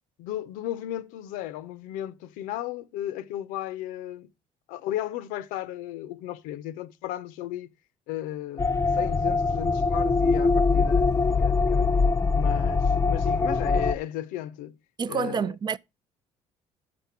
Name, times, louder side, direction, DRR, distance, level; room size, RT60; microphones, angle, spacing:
voice 1, 0.2-4.3 4.7-7.7 8.1-11.9 12.3-14.7 15.1-15.5, left 13 dB, 80° left, 0.6 m, -35 dB
sound 1, 8.6-13.9, left 4 dB, 20° left, 0.5 m, -23 dB
voice 2, 15.0-15.8, right 6 dB, 35° right, 0.4 m, -28 dB
6.5 x 6.0 x 5.6 m
supercardioid pair, 75°, 14 cm